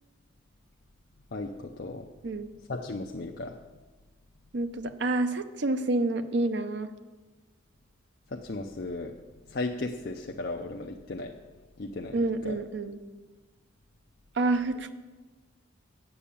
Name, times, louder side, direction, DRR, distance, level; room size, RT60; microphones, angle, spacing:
voice 1, 1.3-2.1 2.7-3.5 8.3-9.2 9.5-11.3 11.8-12.1 12.4-12.6, left 2 dB, 50° left, 2 dB, 0.5 m, -35 dB
voice 2, 4.5-6.9 12.1-13.0 14.3-14.9, right 2 dB, 60° right, 9 dB, 0.7 m, -28 dB
8.5 x 7.0 x 8.5 m, 1.3 s
head